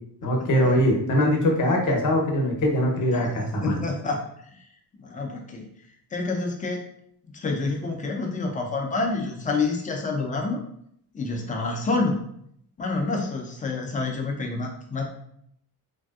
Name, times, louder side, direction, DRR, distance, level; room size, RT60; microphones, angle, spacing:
voice 1, 0.2-3.8, equal, 45° left, 1 dB, 0.7 m, -22 dB
voice 2, 3.6-4.2 5.0-5.6 6.1-6.8 7.3-10.6 11.1-12.2 12.8-15.1, left 3 dB, 20° left, 1 dB, 0.4 m, -28 dB
3.2 x 2.6 x 2.3 m, 0.70 s
cardioid pair, 160°, 43 cm